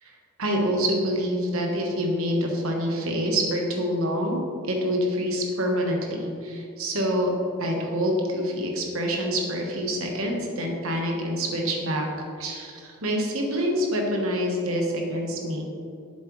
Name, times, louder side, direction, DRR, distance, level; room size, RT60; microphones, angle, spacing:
voice 1, 0.0-7.3 7.6-12.1 12.4-15.6, equal, 70° right, 1 dB, 1.3 m, -26 dB
7.4 x 7.4 x 3.2 m, 2.4 s
head